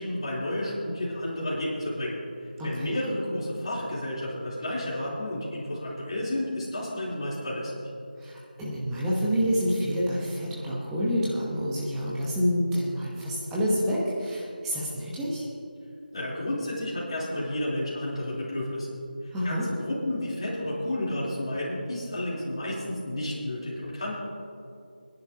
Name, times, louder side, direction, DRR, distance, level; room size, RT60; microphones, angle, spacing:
voice 1, 0.0-2.2 2.6-7.7 16.1-18.9 19.4-24.1, left 1 dB, 35° left, -6 dB, 3.4 m, -31 dB
voice 2, 2.6-2.9 8.2-15.4 19.3-19.7, equal, 5° right, -6 dB, 1.0 m, -28 dB
22.0 x 10.5 x 2.8 m, 2.6 s
figure-of-eight pair, 170°, 5 cm